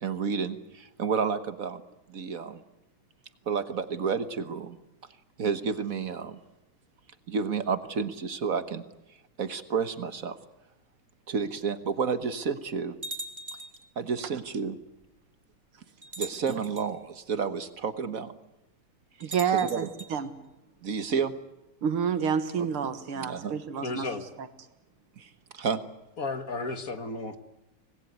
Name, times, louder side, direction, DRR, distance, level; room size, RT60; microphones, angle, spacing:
voice 1, 0.0-1.8 2.1-2.6 3.5-4.8 5.4-6.4 7.3-8.8 9.4-10.4 11.3-13.0 14.0-14.8 16.2-18.3 19.2-19.9 20.8-21.3 22.6-22.7 23.2-23.5 25.2-25.8, right 5 dB, 45° right, 11 dB, 1.5 m, -30 dB
sound 1, 13.0-13.9 15.0-15.1 16.0-16.9 19.2-20.1, right 1 dB, 20° right, 2.4 m, -40 dB
voice 2, 19.2-20.3 21.8-24.1, right 7 dB, 85° right, 10 dB, 2.5 m, -28 dB
voice 3, 23.8-24.2 26.2-27.4, left 3 dB, 45° left, 9 dB, 1.7 m, -33 dB
25.5 x 20.0 x 9.6 m, 0.95 s
omnidirectional pair, 2.3 m